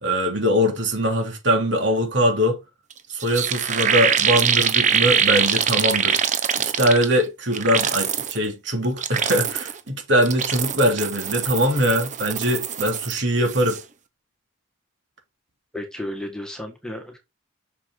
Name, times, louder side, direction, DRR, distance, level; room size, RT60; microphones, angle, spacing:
voice 1, 0.0-2.6 3.1-6.2 6.6-13.8, equal, 65° right, 3.2 m, -22 dB
sound 1, 2.9-3.0 3.2-7.2 7.5-8.4 8.8-9.8 10.2-13.2 13.5-13.8, right 7 dB, 40° right, 1.0 m, -23 dB
voice 2, 15.7-17.2, left 1 dB, 5° left, 1.6 m, -33 dB
7.2 x 6.6 x 3.8 m
head